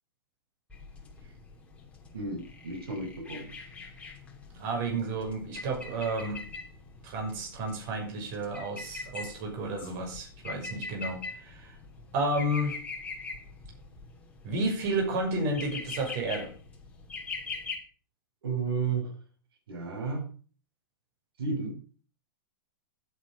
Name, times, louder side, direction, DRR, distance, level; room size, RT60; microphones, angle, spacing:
sound 1, 0.7-17.8, left 4 dB, 10° left, 3.3 m, -43 dB
voice 1, 2.1-3.5 18.4-19.1 19.7-20.3 21.4-21.7, right 4 dB, 80° right, 4 dB, 5.9 m, -32 dB
voice 2, 4.5-6.4 7.0-11.7 12.1-12.8 14.4-16.5, right 2 dB, 45° right, 1 dB, 6.6 m, -31 dB
12.5 x 8.6 x 6.9 m, 0.41 s
hypercardioid pair, 145°, 12 cm